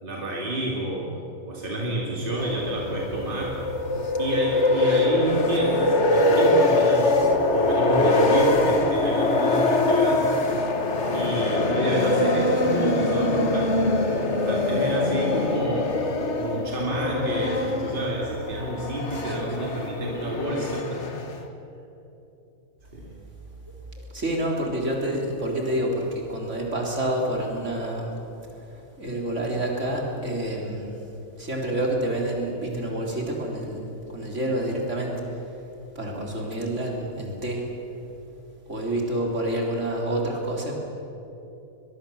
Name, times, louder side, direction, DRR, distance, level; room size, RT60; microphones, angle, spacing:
voice 1, 0.0-3.6 4.2-7.2 7.5-10.4 11.1-14.0 14.5-16.0 16.4-21.1 22.9-23.2, right 1 dB, 40° right, -2 dB, 2.8 m, -29 dB
sound 1, 2.4-21.5, left 2 dB, 55° left, 1.9 m, -23 dB
voice 2, 19.1-19.6 24.0-28.1 28.5-31.0 31.4-35.6 36.0-37.7 38.7-40.8, right 1 dB, 55° right, -1 dB, 4.0 m, -28 dB
22.5 x 22.0 x 7.3 m, 2.9 s
omnidirectional pair, 1.5 m